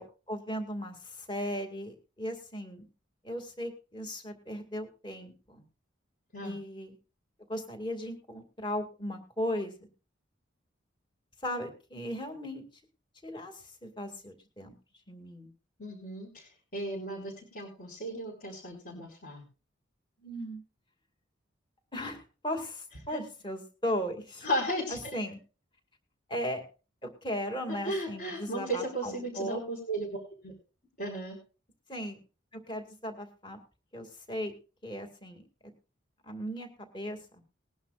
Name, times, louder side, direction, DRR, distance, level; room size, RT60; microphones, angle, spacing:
voice 1, 0.0-2.9 3.2-5.6 6.4-6.9 7.5-9.9 11.4-12.6 13.2-14.7 15.1-15.5 20.2-20.6 21.9-24.5 25.1-25.4 26.3-26.6 27.0-29.6 31.9-32.2 32.7-33.6 33.9-34.5 34.8-35.4 36.2-37.2, equal, 25° left, 4 dB, 2.2 m, -37 dB
voice 2, 15.8-19.4 23.1-23.2 24.4-25.2 27.7-30.1 30.4-30.5 31.0-31.4, equal, 45° left, -3 dB, 4.8 m, -35 dB
20.5 x 11.0 x 2.4 m, 0.34 s
head